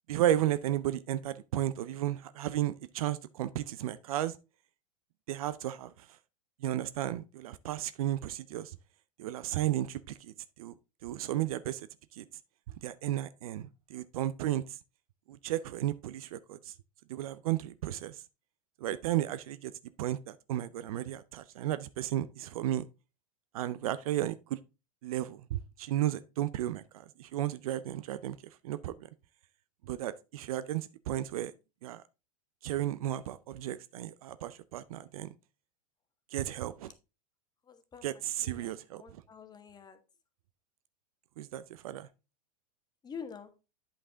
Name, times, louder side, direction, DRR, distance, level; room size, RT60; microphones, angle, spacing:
voice 1, 0.1-4.3 5.3-5.9 6.6-8.7 9.2-10.0 10.6-10.7 11.0-11.8 12.2-12.3 12.8-14.6 15.3-16.6 17.1-18.1 18.8-19.7 20.0-22.8 23.5-24.6 25.0-26.8 27.2-28.3 28.6-28.9 29.9-31.5 31.8-32.0 32.6-35.3 36.3-36.9 38.0-39.0 41.4-42.1, right 13 dB, 70° right, 0.6 m, -33 dB
voice 2, 37.7-38.1 38.4-40.0 43.0-43.5, left 6 dB, 20° left, 1.3 m, -47 dB
8.7 x 5.4 x 3.6 m
hypercardioid pair, 105°, 19 cm